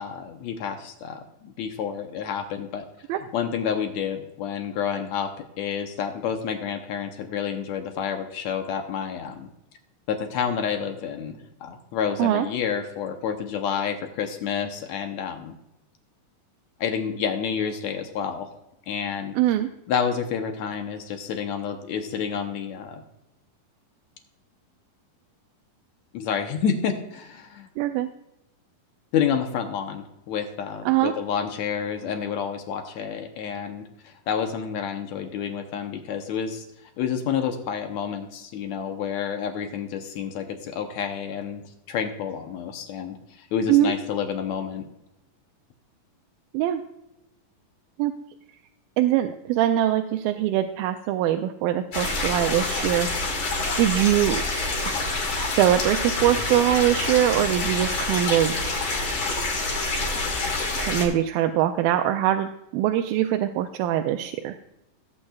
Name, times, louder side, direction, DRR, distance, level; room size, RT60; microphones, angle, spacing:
voice 1, 0.0-2.8 3.2-5.3 5.6-9.5 10.1-15.5 16.8-18.5 18.9-19.4 19.9-23.0 26.1-27.7 29.1-36.6 37.0-44.9, left 7 dB, 75° left, 5 dB, 1.7 m, -29 dB
voice 2, 19.4-19.7 27.8-28.1 30.9-31.1 43.7-43.9 46.5-46.8 48.0-48.1 49.0-53.1 53.4-54.4 55.4-58.6 60.8-64.6, right 12 dB, 85° right, 6 dB, 2.3 m, -22 dB
sound 1, 51.9-61.1, left 2 dB, 60° left, 3.6 m, -27 dB
16.5 x 8.5 x 2.3 m, 0.87 s
omnidirectional pair, 4.1 m